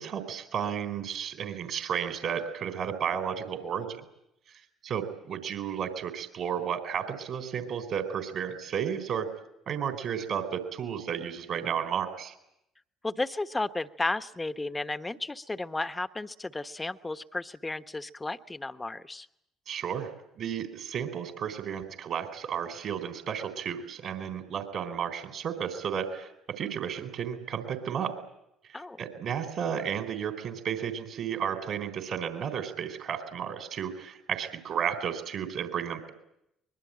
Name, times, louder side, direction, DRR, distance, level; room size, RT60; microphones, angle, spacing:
voice 1, 0.0-4.0 4.8-9.3 9.7-12.3 19.7-20.1 20.4-26.3 26.6-28.1 28.7-36.1, right 8 dB, 55° right, 6 dB, 3.9 m, -33 dB
voice 2, 13.0-19.3 28.7-29.0, left 2 dB, 20° left, 10 dB, 1.3 m, -33 dB
24.0 x 21.5 x 8.8 m, 0.81 s
figure-of-eight pair, 50°, 0 cm